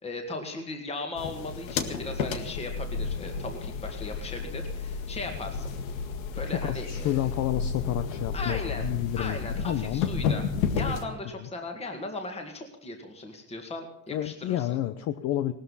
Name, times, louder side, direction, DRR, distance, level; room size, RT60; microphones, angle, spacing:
voice 1, 0.0-5.7 6.4-7.3 8.3-8.8 9.2-10.5 10.7-14.8, left 2 dB, 15° left, 4 dB, 2.0 m, -37 dB
sound 1, 1.2-11.0, left 6 dB, 85° left, 1.9 m, -32 dB
voice 2, 6.6-10.1 11.4-11.5 14.1-15.5, left 12 dB, 45° left, 11 dB, 0.8 m, -30 dB
18.0 x 13.0 x 5.6 m, 0.71 s
cardioid pair, 145°, 39 cm